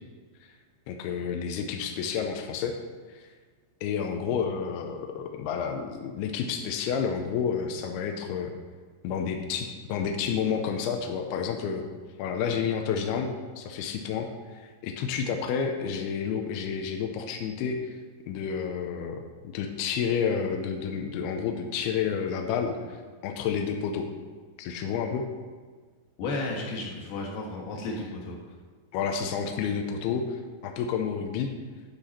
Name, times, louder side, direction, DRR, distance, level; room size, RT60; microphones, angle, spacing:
voice 1, 0.9-2.8 3.1-3.2 3.8-8.5 9.0-11.8 12.2-17.9 18.3-24.1 24.6-25.3 28.9-31.5, left 6 dB, 85° left, 4 dB, 2.3 m, -30 dB
voice 2, 26.2-28.4, left 2 dB, 65° left, -2 dB, 3.3 m, -33 dB
12.0 x 5.8 x 4.2 m, 1.5 s
omnidirectional pair, 5.3 m